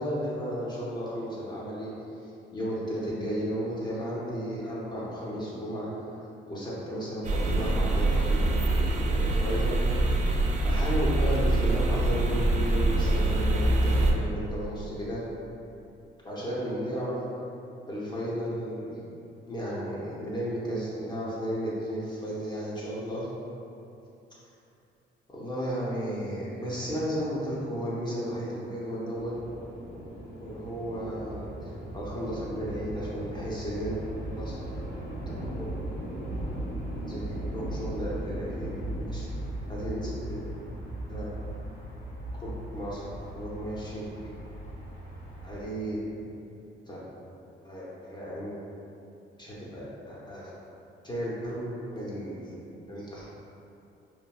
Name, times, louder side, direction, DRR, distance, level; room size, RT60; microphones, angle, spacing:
voice 1, 0.0-1.9 2.2-5.9 6.5-10.2 10.6-15.3 16.2-17.2 17.9-19.0 19.5-23.3 25.3-29.3 30.4-34.0 34.4-34.6 35.3-35.7 37.0-39.4 39.7-40.5 41.1-41.3 42.3-44.3 45.4-46.3 46.9-47.0 47.6-48.6 49.4-50.5 51.0-52.6 52.9-53.3, equal, 20° left, -7 dB, 0.6 m, -34 dB
sound 1, 7.2-14.1, right 2 dB, 40° right, 0.4 m, -24 dB
sound 2, 29.1-45.6, right 1 dB, 90° left, 1.3 m, -37 dB
3.0 x 2.4 x 2.2 m, 2.7 s
cardioid pair, 90°, 20 cm